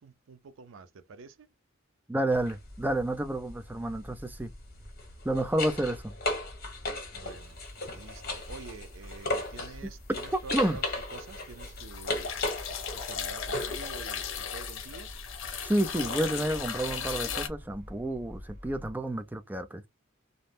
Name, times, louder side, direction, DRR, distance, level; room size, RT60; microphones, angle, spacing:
voice 1, 0.0-1.5 7.1-7.6 7.9-10.8 11.1-12.3 12.9-15.1, right 4 dB, 80° right, 0.4 m, -48 dB
voice 2, 2.1-4.5 5.2-6.1 10.5-10.8 15.6-19.9, right 1 dB, 10° right, 0.4 m, -30 dB
sound 1, 2.3-2.5 4.8-9.8 10.1-13.9 16.5-16.6, left 2 dB, 50° left, 1.0 m, -36 dB
sound 2, 2.3-18.9, left 1 dB, 45° right, 1.3 m, -47 dB
sound 3, 9.3-9.9 10.3-17.5, left 7 dB, 80° left, 0.6 m, -37 dB
2.6 x 2.1 x 3.2 m
head